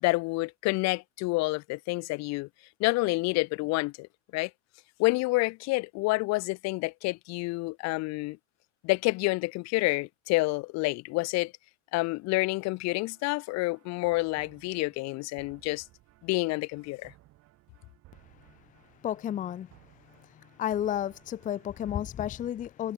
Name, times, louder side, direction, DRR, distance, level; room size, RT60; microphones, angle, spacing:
voice 1, 0.0-2.5 2.8-4.5 5.0-8.4 8.8-11.5 11.9-15.9 16.2-17.1, left 23 dB, 55° left, 0.9 m, -28 dB
sound 1, 12.9-22.1, right 17 dB, 55° right, 4.5 m, -60 dB
voice 2, 19.0-19.7 20.6-22.9, left 10 dB, 25° left, 0.6 m, -31 dB
cardioid pair, 145°, 31 cm